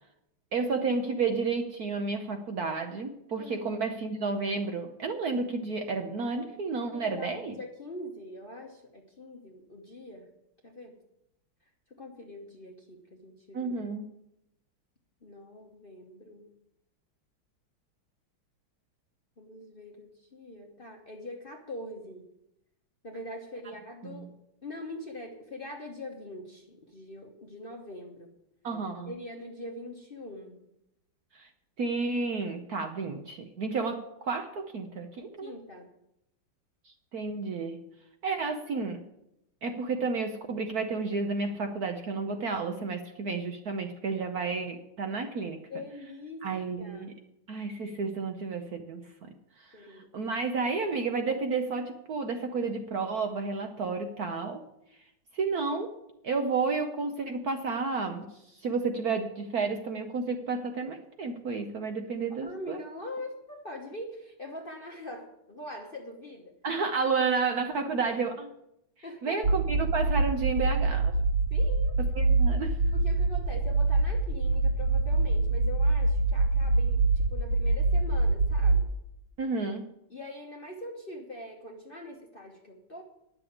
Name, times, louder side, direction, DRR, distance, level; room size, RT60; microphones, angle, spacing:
voice 1, 0.5-7.5 13.5-14.1 24.0-24.3 28.6-29.1 31.3-31.5 31.8-35.5 36.8-37.8 38.2-39.0 39.6-45.6 46.4-47.1 47.5-54.6 55.3-55.9 56.2-62.8 66.6-68.5 69.2-71.1 72.1-72.8 79.4-79.9, right 4 dB, 60° right, 5 dB, 1.1 m, -31 dB
voice 2, 6.9-10.3 10.6-10.9 12.0-13.7 15.2-16.5 19.4-22.2 23.0-24.3 24.6-28.3 29.0-30.6 35.4-35.9 45.7-46.4 46.8-47.1 49.7-50.1 62.3-66.5 69.0-69.4 71.5-71.9 72.9-78.9 80.1-83.0, left 1 dB, 35° left, 1 dB, 1.0 m, -43 dB
sound 1, 69.4-78.8, right 3 dB, 80° right, 0.7 m, -25 dB
10.5 x 6.9 x 8.5 m, 0.83 s
omnidirectional pair, 2.3 m